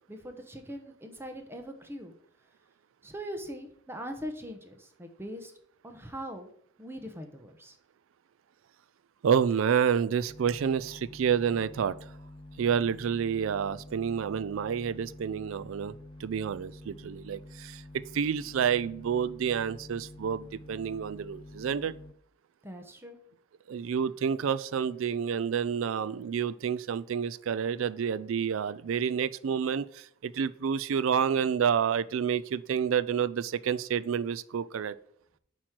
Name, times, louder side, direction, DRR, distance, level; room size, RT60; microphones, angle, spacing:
voice 1, 0.1-2.1 3.0-5.5 5.8-6.5 6.8-7.8 22.6-23.2, equal, 10° right, 5 dB, 1.0 m, -41 dB
voice 2, 9.2-11.9 12.6-15.9 16.2-17.8 18.1-21.9 23.7-35.0, right 7 dB, 80° right, 15 dB, 0.4 m, -29 dB
sound 1, 10.3-22.1, left 1 dB, 25° left, 0.5 m, -48 dB
8.4 x 3.1 x 5.9 m, 0.65 s
head